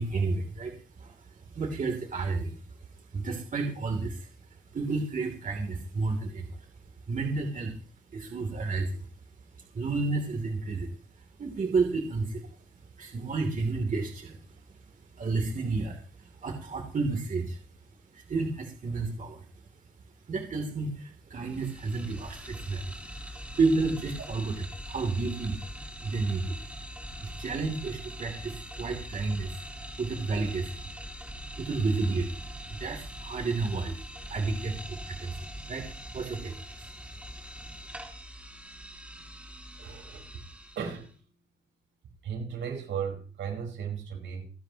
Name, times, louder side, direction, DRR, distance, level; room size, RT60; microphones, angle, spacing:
voice 1, 0.0-2.6 3.1-4.3 4.7-6.7 7.1-7.7 8.1-9.1 9.7-10.9 11.4-12.5 13.0-14.4 15.2-17.6 18.1-19.4 20.3-23.0 23.5-25.6 26.0-26.6 27.2-29.6 30.0-30.8 31.6-32.4 32.7-34.0 34.3-35.4 35.7-35.9 36.1-36.9, right 3 dB, 40° right, 3.1 m, -31 dB
sound 1, 21.4-41.1, equal, 5° right, 3.9 m, -43 dB
voice 2, 39.8-40.4 40.7-41.2 42.2-44.4, right 7 dB, 70° right, 5.0 m, -36 dB
29.5 x 10.0 x 3.0 m
cardioid pair, 90°, 20 cm